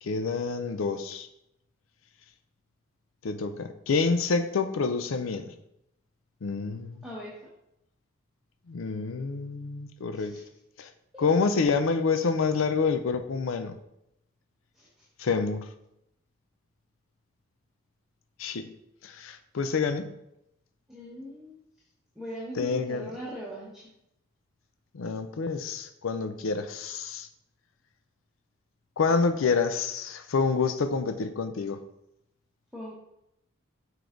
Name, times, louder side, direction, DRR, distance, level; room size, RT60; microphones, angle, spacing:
voice 1, 0.0-1.3 3.2-5.5 6.4-7.0 8.7-10.3 10.8-10.9 11.2-13.8 15.2-15.7 18.4-18.7 19.0-20.1 22.6-23.1 24.9-27.3 29.0-31.8, left 4 dB, 80° left, 8 dB, 0.5 m, -28 dB
voice 2, 7.0-7.3 10.1-10.4 11.1-11.3 14.7-15.0 20.9-21.6 22.1-23.8 32.7-32.9, equal, ahead, -7 dB, 1.2 m, -40 dB
6.9 x 4.7 x 3.8 m, 0.81 s
head